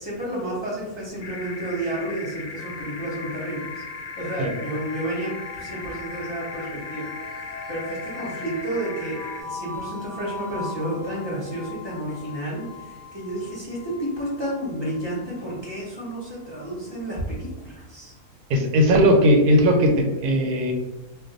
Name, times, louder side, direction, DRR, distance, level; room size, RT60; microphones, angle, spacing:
voice 1, 0.0-3.8 4.2-18.1, right 1 dB, 25° left, -8 dB, 0.7 m, -31 dB
sound 1, 1.2-9.4, left 4 dB, 70° left, 1.0 m, -38 dB
sound 2, 2.6-17.5, left 4 dB, 50° right, 0.7 m, -41 dB
voice 2, 18.5-20.7, equal, 80° right, 3 dB, 1.1 m, -18 dB
2.5 x 2.2 x 3.9 m, 1.1 s
omnidirectional pair, 1.6 m